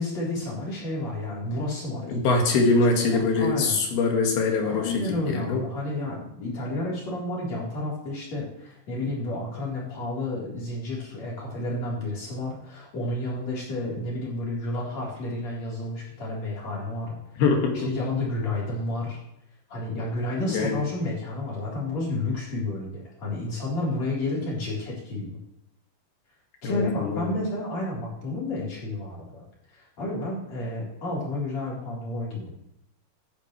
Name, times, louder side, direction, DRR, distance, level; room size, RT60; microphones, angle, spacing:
voice 1, 0.0-2.4 3.2-3.8 4.6-17.2 17.9-19.2 19.7-25.4 26.6-29.4 29.7-32.7, left 2 dB, 45° left, -5 dB, 4.8 m, -31 dB
voice 2, 2.1-5.6 17.4-17.9 20.5-20.8 26.6-27.3, left 3 dB, 75° left, 2 dB, 3.8 m, -23 dB
16.5 x 10.0 x 3.2 m, 0.79 s
omnidirectional pair, 4.5 m